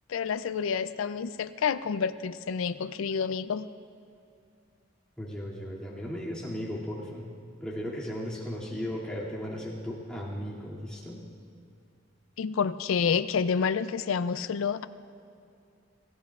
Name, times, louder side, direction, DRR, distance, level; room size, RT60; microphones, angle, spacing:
voice 1, 0.1-3.7 12.4-14.9, left 6 dB, 80° left, 13 dB, 0.4 m, -29 dB
voice 2, 5.2-7.3 7.6-11.2, equal, 5° left, -7 dB, 2.3 m, -36 dB
29.5 x 14.5 x 2.4 m, 2.4 s
head